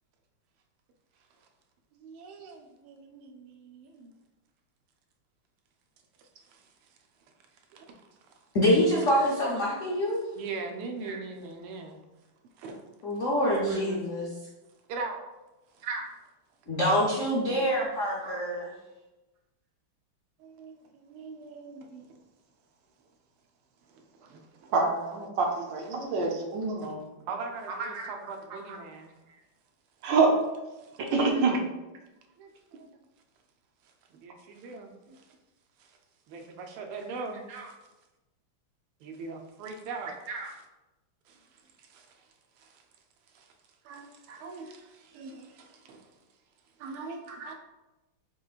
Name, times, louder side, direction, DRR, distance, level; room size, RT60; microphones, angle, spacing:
voice 1, 1.9-4.1 6.2-6.7 7.7-8.0 8.3-8.4 10.4-12.0 12.6-12.8 13.4-14.0 14.9-15.2 15.7-15.9 16.6-16.9 17.4-17.8 20.4-22.2 23.9-24.7 25.8-25.9 26.3-26.4 26.8-27.0 27.3-29.1 30.8-31.0 32.4-33.0 34.1-35.3 35.8-36.0 36.3-37.7 39.0-40.1 40.5-40.6 41.3-42.3 42.6-42.8 43.3-43.5 43.8-46.1 46.8-47.5, right 4 dB, 85° right, 4 dB, 1.5 m, -41 dB
voice 2, 8.5-10.2 13.0-14.3 16.7-18.7, equal, 70° left, -5 dB, 0.7 m, -25 dB
voice 3, 24.7-27.0 27.8-28.1 28.7-28.8 30.0-30.3 31.1-31.6 37.5-37.6 40.3-40.5 47.3-47.5, right 4 dB, 70° right, 1 dB, 1.2 m, -27 dB
6.8 x 3.0 x 2.4 m, 1.0 s
omnidirectional pair, 2.3 m